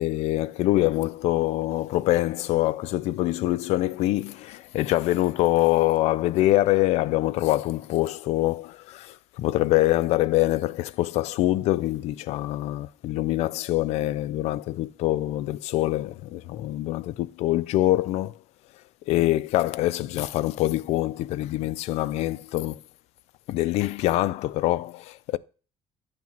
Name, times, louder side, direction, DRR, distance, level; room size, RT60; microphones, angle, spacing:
voice 1, 0.0-18.4 19.1-22.8 23.5-25.4, left 16 dB, 80° left, 0.4 m, -24 dB
8.8 x 5.9 x 3.0 m
cardioid pair, 135°, 11 cm